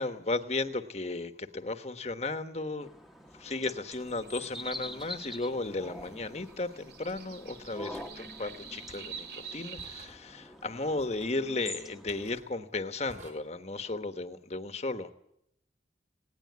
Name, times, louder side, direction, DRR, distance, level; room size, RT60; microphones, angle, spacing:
voice 1, 0.0-2.9 3.3-15.1, left 2 dB, 40° left, 9 dB, 1.2 m, -35 dB
sound 1, 2.8-12.4, left 1 dB, ahead, 1.2 m, -46 dB
sound 2, 3.3-3.4 5.0-5.2 6.0-6.2 7.1-7.4 7.9-8.1 8.9-9.3 9.8-10.2 11.0-11.4 12.1-12.5 13.1-13.3, right 1 dB, 45° right, 4.9 m, -54 dB
sound 3, 3.9-10.1, right 7 dB, 65° right, 2.3 m, -48 dB
19.0 x 18.5 x 9.5 m, 0.77 s
head